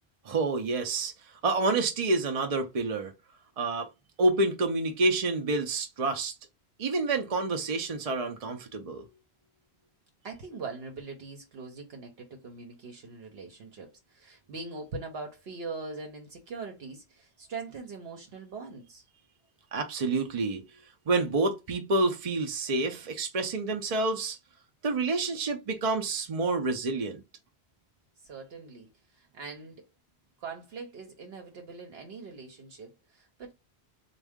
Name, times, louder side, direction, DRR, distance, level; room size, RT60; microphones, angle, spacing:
voice 1, 0.3-1.1 1.4-3.1 3.6-3.9 4.2-6.3 6.8-9.1 19.7-20.6 21.1-24.4 24.8-27.2, right 3 dB, 45° right, 0.5 m, -28 dB
voice 2, 10.2-19.0 28.2-29.8 30.4-33.5, right 4 dB, 70° right, 1.0 m, -42 dB
3.6 x 2.3 x 3.5 m
omnidirectional pair, 1.1 m